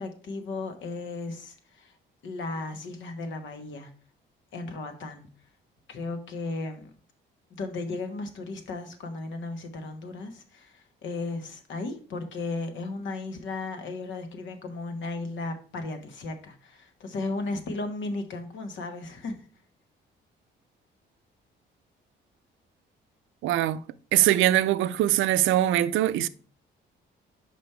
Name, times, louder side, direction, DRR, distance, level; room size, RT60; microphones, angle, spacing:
voice 1, 0.0-2.0 2.2-3.9 4.5-5.3 5.9-6.9 7.5-19.4, left 3 dB, 75° left, 1.3 m, -35 dB
voice 2, 23.4-23.8 24.1-26.3, right 13 dB, 80° right, 0.4 m, -22 dB
5.2 x 5.2 x 4.4 m
cardioid pair, 90°, 20 cm